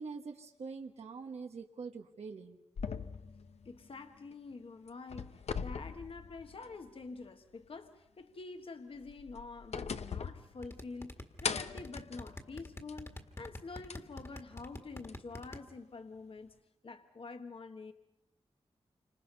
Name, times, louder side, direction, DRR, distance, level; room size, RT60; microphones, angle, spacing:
voice 1, 0.0-2.6, right 4 dB, 90° right, 3 dB, 1.5 m, -44 dB
sound 1, 2.8-4.5 4.9-6.9 7.2-7.3 8.9-11.0 11.4-13.1 13.9-14.0 15.1-15.2, left 6 dB, 85° left, 0.9 m, -41 dB
voice 2, 3.6-16.5 16.8-17.9, left 4 dB, 60° left, 7 dB, 1.4 m, -47 dB
sound 2, 10.6-15.6, left 1 dB, 25° left, 1.8 m, -45 dB
29.0 x 26.0 x 5.5 m, 0.82 s
wide cardioid pair, 110°, 11 cm